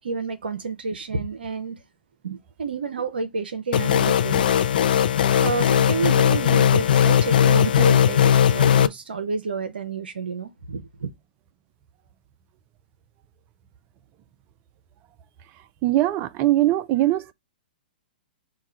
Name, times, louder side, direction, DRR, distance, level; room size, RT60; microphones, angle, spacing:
voice 1, 0.0-1.8 2.2-4.7 5.4-11.1, right 4 dB, 75° right, 0.6 m, -30 dB
sound 1, 3.7-8.9, left 9 dB, 60° left, 0.4 m, -18 dB
voice 2, 15.8-17.3, right 15 dB, 35° right, 0.5 m, -21 dB
4.7 x 2.3 x 4.2 m
figure-of-eight pair, 115°, 5 cm